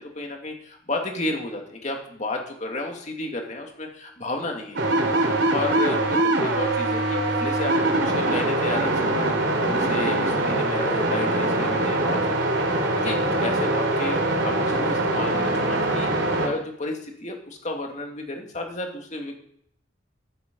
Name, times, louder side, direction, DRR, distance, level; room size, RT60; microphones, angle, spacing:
voice 1, 0.0-9.3 9.7-16.1 16.4-19.4, left 2 dB, 40° left, 2 dB, 2.3 m, -32 dB
sound 1, 4.8-16.5, right 2 dB, 80° right, 2.9 m, -23 dB
13.5 x 8.5 x 5.4 m, 0.69 s
head